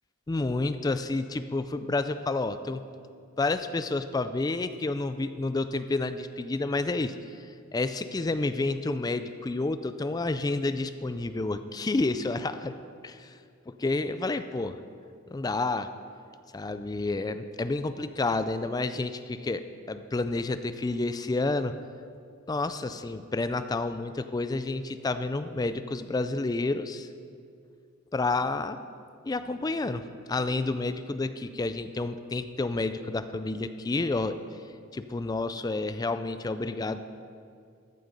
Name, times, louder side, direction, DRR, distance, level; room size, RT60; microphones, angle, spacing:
voice 1, 0.3-2.8 3.4-7.1 7.7-12.8 13.0-13.3 13.8-14.8 15.3-15.9 16.5-21.7 22.5-27.1 28.1-28.8 29.2-30.0 30.3-34.4 34.9-37.0, left 3 dB, 20° left, 11 dB, 0.3 m, -30 dB
14.0 x 7.9 x 5.1 m, 2.3 s
head